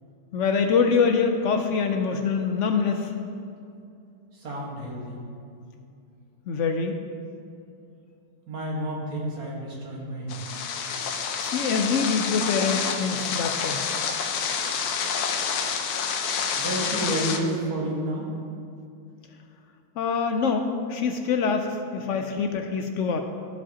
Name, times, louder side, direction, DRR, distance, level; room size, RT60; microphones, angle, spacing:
voice 1, 0.3-3.1 6.5-6.9 11.4-13.8 20.0-23.2, left 5 dB, 70° left, 5 dB, 0.7 m, -25 dB
voice 2, 4.3-5.2 8.5-10.5 16.6-18.3, right 1 dB, 75° right, -4 dB, 2.0 m, -30 dB
sound 1, 10.3-17.4, left 6 dB, 90° left, 1.2 m, -28 dB
13.5 x 4.9 x 2.9 m, 2.5 s
omnidirectional pair, 1.6 m